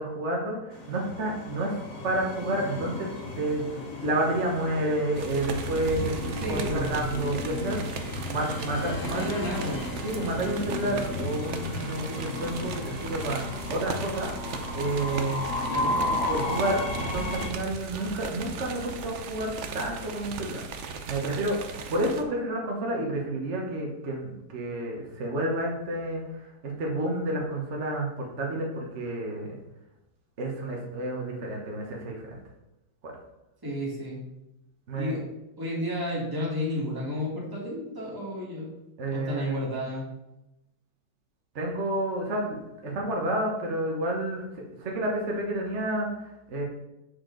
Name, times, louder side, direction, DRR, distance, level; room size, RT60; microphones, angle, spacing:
voice 1, 0.0-3.1 3.4-7.8 8.3-9.2 10.0-14.3 14.7-20.6 21.1-29.5 30.4-32.4 33.0-33.1 34.9-35.2 39.0-39.7 41.5-46.6, right 1 dB, 45° right, -1 dB, 1.3 m, -30 dB
Train, 0.7-17.5, left 2 dB, 55° left, 1.4 m, -34 dB
sound 1, 5.1-22.2, right 5 dB, 60° right, 0.8 m, -37 dB
voice 2, 6.4-7.0 9.0-9.9 15.7-16.0 33.6-34.2 34.9-35.2 35.6-38.7 39.1-40.0, equal, 10° right, -5 dB, 2.1 m, -32 dB
6.9 x 6.6 x 3.8 m, 0.93 s
omnidirectional pair, 1.9 m